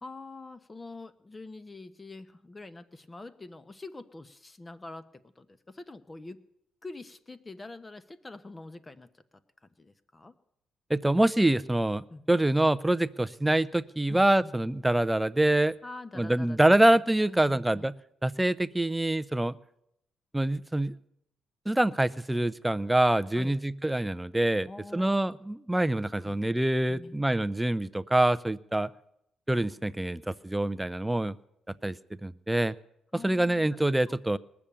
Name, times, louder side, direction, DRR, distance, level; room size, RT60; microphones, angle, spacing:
voice 1, 0.0-6.4 6.8-9.2 9.8-10.3 12.1-12.5 14.1-14.6 15.8-17.0 17.3-17.9 23.3-23.6 24.7-25.2 26.2-26.4 26.9-27.2 33.1-34.2, left 2 dB, 25° left, 13 dB, 0.9 m, -45 dB
voice 2, 10.9-15.7 16.2-17.9 18.2-19.6 20.3-20.9 21.7-24.7 24.9-28.9 29.5-31.3 31.8-32.0 32.2-32.7 33.2-34.4, right 1 dB, 10° right, 17 dB, 0.5 m, -25 dB
20.0 x 7.0 x 8.7 m, 0.78 s
cardioid pair, 90°, 0 cm